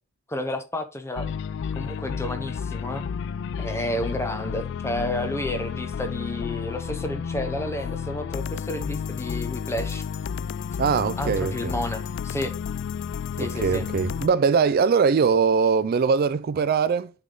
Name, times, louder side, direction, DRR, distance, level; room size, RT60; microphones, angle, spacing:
voice 1, 0.3-1.4 1.7-3.0 3.6-10.0 11.2-12.5 13.4-13.9, left 1 dB, 15° left, 0.8 m, -31 dB
sound 1, 1.2-14.3, left 7 dB, 60° left, 0.3 m, -31 dB
voice 2, 10.8-11.7 13.4-17.1, right 5 dB, 45° right, 0.3 m, -21 dB
9.3 x 3.5 x 3.8 m
head